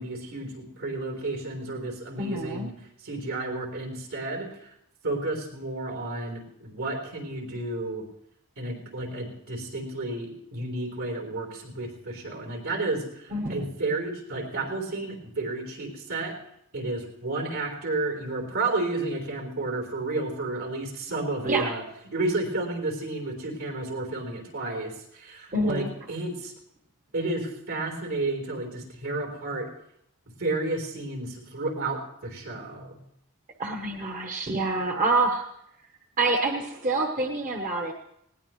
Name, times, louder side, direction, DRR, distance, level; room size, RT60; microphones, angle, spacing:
voice 1, 0.0-2.7 3.0-4.7 5.0-8.0 8.6-16.3 16.7-21.8 22.1-26.5 27.1-29.7 30.4-33.0, right 2 dB, 75° right, 3 dB, 3.8 m, -31 dB
voice 2, 2.2-2.7 13.3-13.7 21.4-21.7 25.5-25.9 33.6-35.4 36.2-37.9, right 2 dB, 35° right, 2 dB, 1.0 m, -27 dB
20.0 x 18.0 x 3.1 m, 0.76 s
head